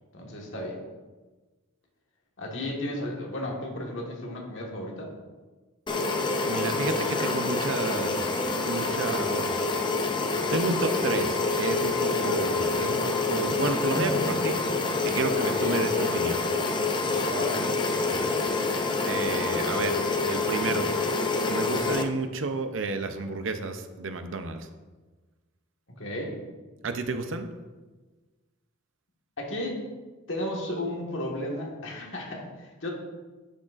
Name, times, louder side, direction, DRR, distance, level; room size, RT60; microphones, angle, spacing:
voice 1, 0.1-0.8 2.4-5.1 12.2-12.4 15.4-15.9 17.1-18.4 26.0-26.4 29.4-29.8 30.3-32.9, left 1 dB, 60° left, -1 dB, 1.6 m, -34 dB
sound 1, 5.9-22.0, left 3 dB, 20° left, 0.4 m, -27 dB
voice 2, 6.4-9.7 10.5-14.6 15.0-16.4 19.1-20.9 21.5-24.7 26.8-27.5, right 3 dB, 65° right, 8 dB, 0.6 m, -31 dB
10.0 x 6.2 x 2.5 m, 1.3 s
head